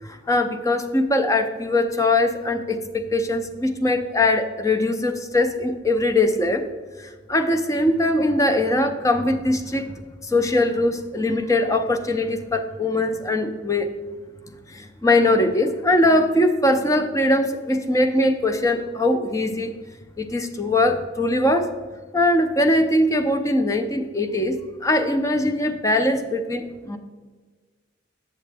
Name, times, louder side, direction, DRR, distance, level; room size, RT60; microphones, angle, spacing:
voice 1, 0.1-6.6 7.0-9.9 10.2-13.9 14.7-19.7 20.2-21.7 22.1-27.0, left 1 dB, 15° left, 7 dB, 0.5 m, -21 dB
7.8 x 7.4 x 3.4 m, 1.4 s
head